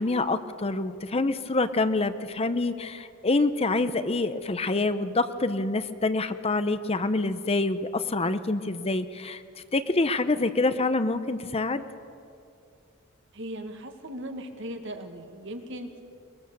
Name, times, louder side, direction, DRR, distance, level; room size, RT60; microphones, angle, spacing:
voice 1, 0.0-9.4 9.7-11.8, left 2 dB, 30° left, 11 dB, 0.7 m, -26 dB
voice 2, 13.3-16.0, equal, 65° right, 5 dB, 1.9 m, -38 dB
22.0 x 21.5 x 6.8 m, 2.5 s
head